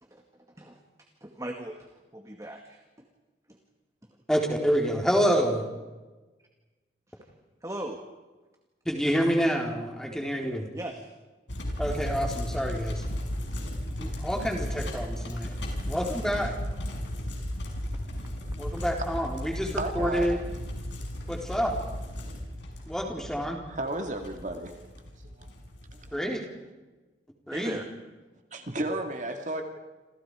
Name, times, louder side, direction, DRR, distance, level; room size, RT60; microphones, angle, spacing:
voice 1, 0.0-3.1 3.5-3.6 4.0-4.2 7.1-7.3 7.6-8.0 10.7-11.0 17.9-18.2 18.7-18.8 27.5-27.9, right 1 dB, 20° right, 3 dB, 2.1 m, -40 dB
voice 2, 4.3-5.6 8.9-10.7 11.8-13.0 14.0-15.6 15.9-16.5 18.6-20.4 21.3-21.8 22.9-23.6 26.1-26.4 27.5-27.8, equal, 5° left, 1 dB, 4.1 m, -28 dB
sound 1, 11.5-26.1, left 1 dB, 80° left, 6.0 m, -35 dB
voice 3, 19.8-20.3 23.7-24.7 25.4-25.5 26.0-26.2 28.5-29.6, right 1 dB, 40° right, 4 dB, 2.3 m, -33 dB
28.5 x 28.0 x 5.0 m, 1.2 s
head